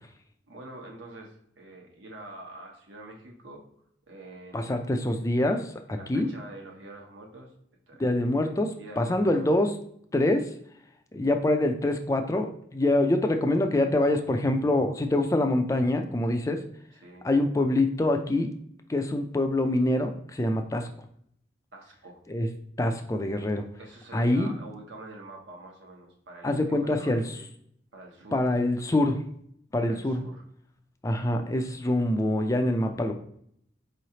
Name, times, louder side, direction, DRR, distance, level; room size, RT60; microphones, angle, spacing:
voice 1, 0.5-3.6 4.1-4.9 5.9-7.5 7.9-8.3 8.8-9.6 17.0-17.3 21.7-22.2 23.8-27.5 27.9-28.5 29.8-30.4, right 2 dB, 80° right, 0 dB, 1.0 m, -46 dB
voice 2, 4.5-6.3 8.0-9.7 10.1-10.5 11.1-16.6 17.2-18.5 18.9-20.9 22.3-22.5 22.8-23.7 24.1-24.5 26.4-27.2 28.3-29.2 29.7-30.2 31.0-33.1, left 1 dB, 15° left, 6 dB, 0.4 m, -25 dB
4.7 x 3.1 x 2.8 m, 0.69 s
head